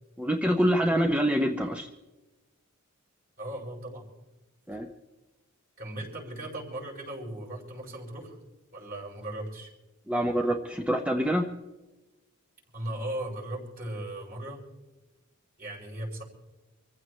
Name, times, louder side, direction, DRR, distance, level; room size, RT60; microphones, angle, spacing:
voice 1, 0.2-1.9 4.7-4.9 10.1-11.5, equal, 5° right, 3 dB, 0.7 m, -25 dB
voice 2, 3.4-4.0 5.8-8.4 8.7-9.7 12.7-14.6 15.6-16.2, right 1 dB, 40° right, -3 dB, 5.5 m, -37 dB
26.0 x 15.0 x 3.2 m, 1.1 s
head